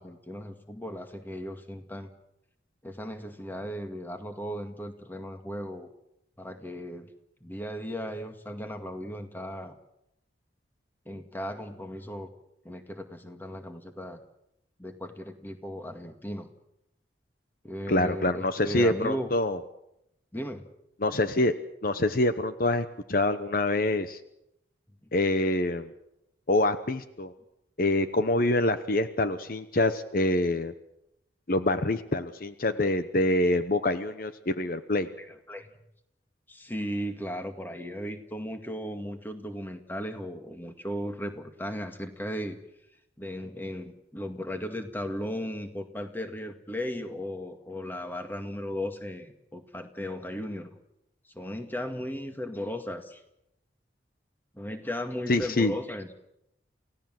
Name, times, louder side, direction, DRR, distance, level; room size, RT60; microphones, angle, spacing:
voice 1, 0.0-2.1 2.8-5.9 6.4-7.1 7.4-9.8 11.1-12.3 12.6-14.2 14.8-16.5 17.6-19.3 20.3-20.7 35.2-35.7 36.5-42.6 43.2-50.7 51.3-53.2 54.5-56.1, equal, 10° left, 6 dB, 2.0 m, -36 dB
voice 2, 17.9-19.6 21.0-21.5 21.8-24.2 25.1-25.9 26.5-27.3 27.8-30.7 31.5-35.1 55.3-55.7, left 1 dB, 50° left, 10 dB, 1.0 m, -26 dB
29.0 x 17.0 x 7.7 m, 0.82 s
head